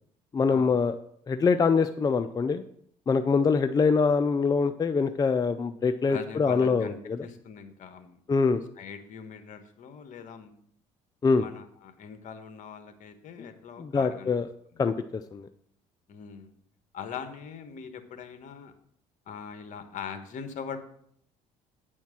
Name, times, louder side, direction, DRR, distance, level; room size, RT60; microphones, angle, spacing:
voice 1, 0.3-1.0 1.3-2.6 3.1-7.3 8.3-8.6 11.2-11.5 13.4-13.5 13.8-14.5 14.8-15.5, left 5 dB, 25° left, 9 dB, 0.5 m, -24 dB
voice 2, 6.1-8.2 8.8-10.6 11.4-14.3 16.1-16.5 16.9-18.7 19.3-20.8, left 6 dB, 60° left, 8 dB, 1.3 m, -41 dB
9.1 x 4.5 x 7.4 m, 0.67 s
supercardioid pair, 90°, 15 cm